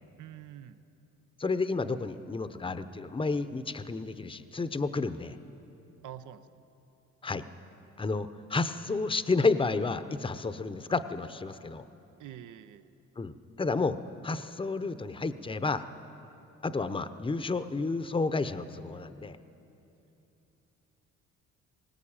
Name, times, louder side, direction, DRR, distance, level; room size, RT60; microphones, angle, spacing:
voice 1, 0.2-0.8 6.0-6.5 12.2-12.9, right 11 dB, 75° right, 12 dB, 0.8 m, -46 dB
voice 2, 1.4-5.4 7.2-7.5 8.0-11.8 13.2-14.0 14.2-15.9 16.6-19.4, left 3 dB, 15° left, 12 dB, 0.8 m, -31 dB
20.0 x 18.0 x 8.8 m, 2.9 s
cardioid pair, 90°, 30 cm